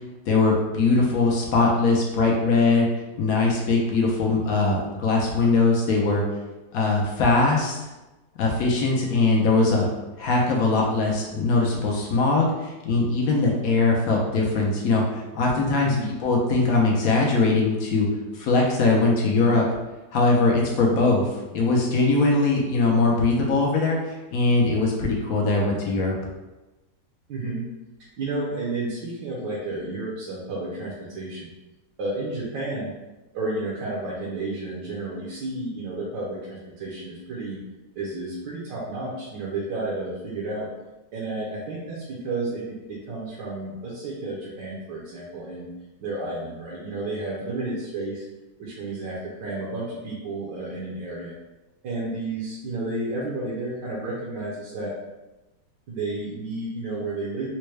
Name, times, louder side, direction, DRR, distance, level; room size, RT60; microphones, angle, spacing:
voice 1, 0.3-2.9 3.2-6.2 6.7-7.9 8.4-9.9 10.2-15.9 16.2-18.1 18.3-19.6 20.1-26.1, left 3 dB, 65° left, -1 dB, 0.9 m, -21 dB
voice 2, 15.8-16.1 27.3-27.7 28.2-31.5 32.0-32.9 33.3-37.6 37.9-40.7 41.1-45.7 46.0-48.2 48.6-51.3 51.8-54.9 55.9-57.5, right 2 dB, 70° right, -6 dB, 1.4 m, -31 dB
4.3 x 2.2 x 3.2 m, 1.1 s
omnidirectional pair, 2.0 m